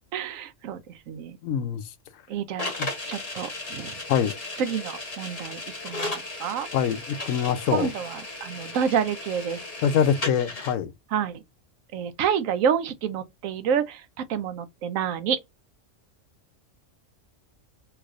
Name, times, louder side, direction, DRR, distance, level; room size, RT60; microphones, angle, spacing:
voice 1, 0.1-0.8 1.1-1.4 2.3-2.7 3.1-3.9 4.6-6.1 6.4-6.7 7.7-9.6 11.1-11.3 11.9-15.4, right 8 dB, 90° right, 1.0 m, -28 dB
voice 2, 1.4-1.8 2.8-2.9 4.1-4.3 6.7-7.9 9.8-10.9, left 8 dB, 85° left, 1.0 m, -24 dB
sound 1, 2.6-10.7, left 2 dB, 30° left, 1.2 m, -35 dB
3.4 x 3.0 x 2.4 m
omnidirectional pair, 1.3 m